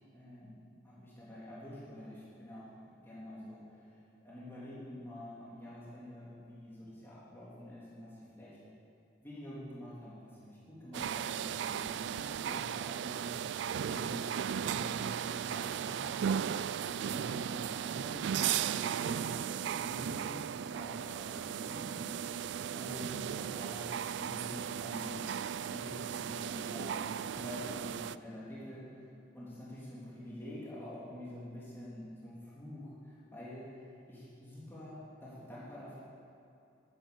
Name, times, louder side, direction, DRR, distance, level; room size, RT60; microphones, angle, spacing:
voice 1, 0.1-0.5 0.8-8.6 9.2-13.3 13.8-14.2 14.6-16.0 16.8-18.4 18.7-22.1 22.7-25.3 25.6-27.0 27.3-29.1 29.3-36.0, left 1 dB, 10° left, -9 dB, 3.2 m, -47 dB
sound 1, 10.9-28.2, right 8 dB, 65° right, 0.3 m, -36 dB
11.5 x 11.0 x 7.0 m, 2.7 s
head